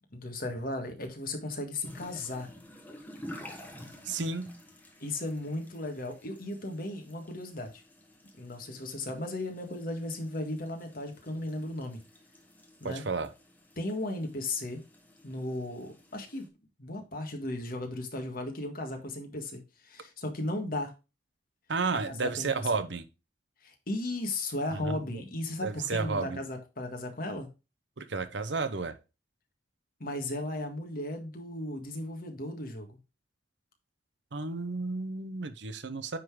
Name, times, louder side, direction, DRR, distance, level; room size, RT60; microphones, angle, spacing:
voice 1, 0.1-2.5 5.0-7.8 8.4-12.0 12.8-13.1 13.8-14.8 15.2-16.5 16.8-20.9 22.1-22.5 23.6-27.5 30.0-33.0, left 1 dB, 50° left, 1.7 m, -36 dB
sound 1, 1.8-16.5, equal, 10° left, 1.3 m, -51 dB
voice 2, 4.0-4.5 12.8-13.3 21.7-23.1 24.7-25.0 25.6-26.4 28.0-28.9 34.3-36.2, right 4 dB, 65° right, 0.8 m, -32 dB
9.5 x 3.9 x 4.7 m
head